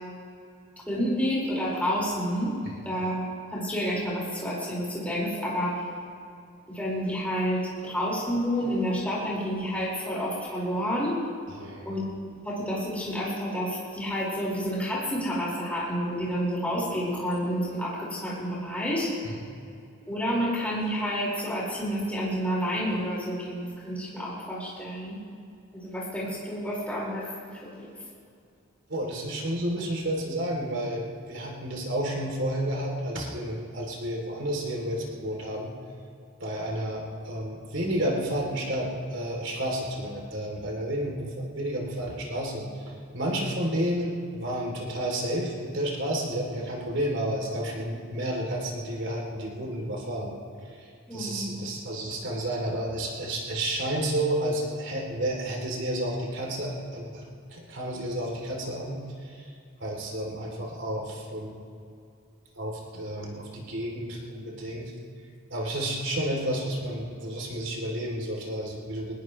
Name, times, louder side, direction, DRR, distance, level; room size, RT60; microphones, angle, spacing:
voice 1, 0.9-2.5 2.8-5.8 6.7-11.2 11.8-12.1 12.4-19.1 20.1-25.2 25.7-27.2 27.5-27.9 51.1-51.5, equal, 5° left, -6 dB, 5.1 m, -29 dB
voice 2, 11.5-11.9 19.2-19.3 28.9-35.7 36.4-50.3 50.8-59.0 59.2-59.5 59.8-61.5 62.5-64.9 65.5-69.1, right 1 dB, 65° right, -1 dB, 3.3 m, -31 dB
21.5 x 20.0 x 3.3 m, 2.5 s
head